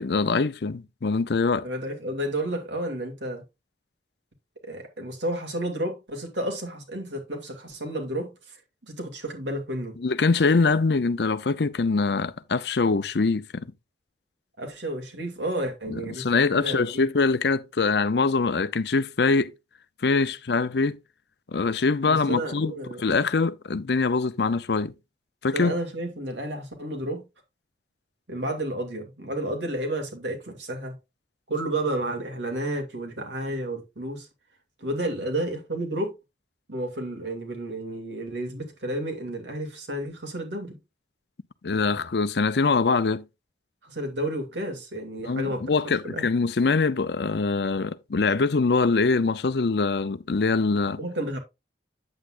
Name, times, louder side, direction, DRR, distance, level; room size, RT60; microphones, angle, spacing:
voice 1, 0.0-1.7 10.0-13.7 15.9-19.5 20.0-21.0 21.5-22.7 23.0-24.9 25.4-25.7 41.6-43.2 45.2-51.0, left 4 dB, 65° left, 0.6 m, -23 dB
voice 2, 1.6-3.4 4.6-10.0 14.6-17.1 22.0-23.0 25.5-27.3 28.3-31.0 31.5-34.3 34.8-36.1 36.7-40.8 43.8-45.7 46.0-46.2 51.0-51.4, right 1 dB, 80° right, 2.5 m, -31 dB
8.8 x 8.2 x 2.5 m
head